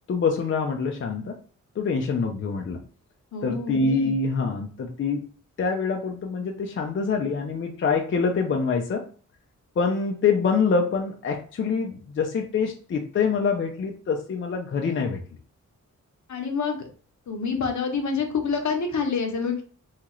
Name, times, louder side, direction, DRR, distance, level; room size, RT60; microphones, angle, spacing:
voice 1, 0.1-1.3 1.8-2.8 3.4-5.3 5.6-9.0 9.8-15.2, left 5 dB, 40° left, 3 dB, 0.4 m, -25 dB
voice 2, 3.3-3.8 16.3-16.8 17.3-19.6, left 5 dB, 65° left, 3 dB, 0.7 m, -27 dB
2.8 x 2.4 x 2.9 m, 0.40 s
wide cardioid pair, 135°, 31 cm